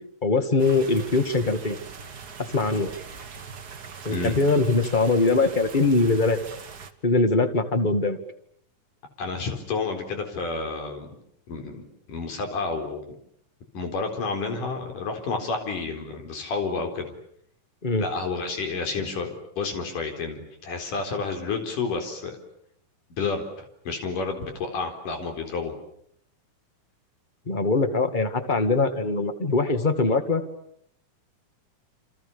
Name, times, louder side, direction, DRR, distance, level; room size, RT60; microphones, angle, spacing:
voice 1, 0.2-1.8 2.5-2.9 4.0-6.4 7.0-8.2 17.8-18.1 27.5-30.4, left 3 dB, 20° left, 8 dB, 1.7 m, -22 dB
sound 1, 0.6-6.9, right 5 dB, 40° right, 1.7 m, -41 dB
voice 2, 4.1-4.4 9.2-11.1 11.5-13.0 13.7-17.1 18.0-22.4 23.2-23.4 23.9-25.7, left 4 dB, 85° left, 5 dB, 5.8 m, -30 dB
28.5 x 27.5 x 7.0 m, 0.69 s
omnidirectional pair, 3.6 m